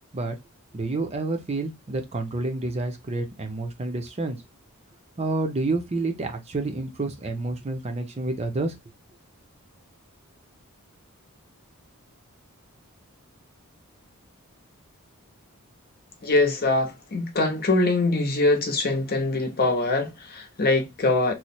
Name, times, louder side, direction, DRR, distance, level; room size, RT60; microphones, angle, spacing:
voice 1, 0.7-4.4 5.2-8.7, right 2 dB, 30° right, 0.5 m, -29 dB
voice 2, 16.2-21.3, left 2 dB, 45° left, 0.8 m, -23 dB
3.0 x 2.0 x 4.1 m
head